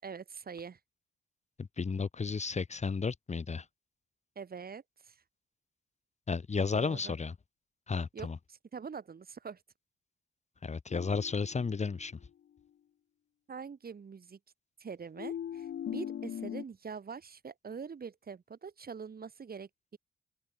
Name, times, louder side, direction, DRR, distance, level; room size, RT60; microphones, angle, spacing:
voice 1, 0.0-0.8 4.4-5.2 6.7-7.2 8.1-9.6 13.5-14.4 14.8-20.0, right 6 dB, 50° right, 7.5 m, -44 dB
voice 2, 1.6-3.6 6.3-7.3 7.9-8.4 10.6-12.2, left 5 dB, 35° left, 1.4 m, -33 dB
sound 1, 10.9-12.2 15.2-16.6, left 9 dB, 65° left, 4.0 m, -40 dB
open air
hypercardioid pair, 50°, 20 cm